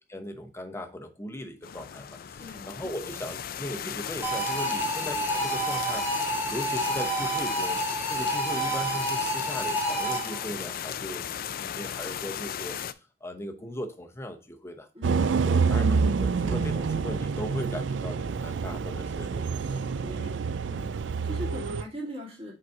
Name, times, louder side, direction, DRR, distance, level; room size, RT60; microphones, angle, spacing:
voice 1, 0.1-12.8 13.2-20.4, left 1 dB, 15° left, 5 dB, 0.8 m, -39 dB
sound 1, 1.6-12.9, left 9 dB, 50° left, 0.4 m, -36 dB
voice 2, 2.4-2.7 4.7-4.9 14.9-15.3 19.9-20.3 20.7-22.5, equal, 30° right, -2 dB, 2.3 m, -41 dB
sound 2, 4.2-10.5, right 1 dB, 10° right, 1.4 m, -29 dB
sound 3, 15.0-21.8, right 5 dB, 75° right, 0.4 m, -27 dB
5.2 x 4.1 x 4.6 m, 0.33 s
head